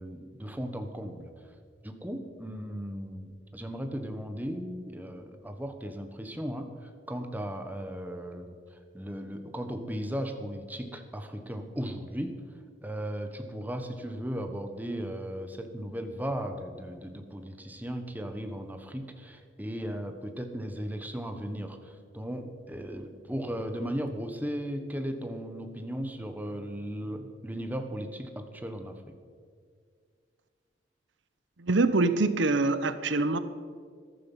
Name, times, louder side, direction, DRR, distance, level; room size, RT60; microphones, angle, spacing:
voice 1, 0.0-1.3 1.8-8.6 8.9-12.4 12.8-29.1, equal, 10° right, 6 dB, 1.1 m, -36 dB
voice 2, 31.6-33.4, right 3 dB, 80° right, 12 dB, 0.8 m, -24 dB
14.0 x 12.5 x 5.6 m, 2.1 s
head